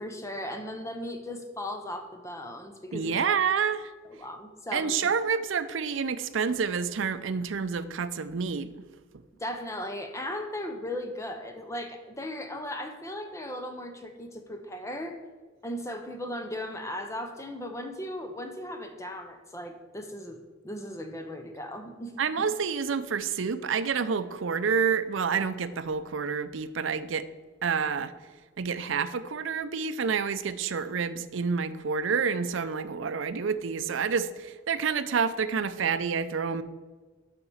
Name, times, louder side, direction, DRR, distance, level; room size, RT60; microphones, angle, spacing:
voice 1, 0.0-3.4 4.1-4.9 9.4-15.2 15.6-20.4 20.6-22.1, left 1 dB, 15° left, 6 dB, 0.7 m, -37 dB
voice 2, 2.9-3.9 4.7-8.7 22.2-27.3 27.6-28.1 28.6-36.6, right 6 dB, 75° right, 12 dB, 0.5 m, -28 dB
6.8 x 5.8 x 7.0 m, 1.4 s
head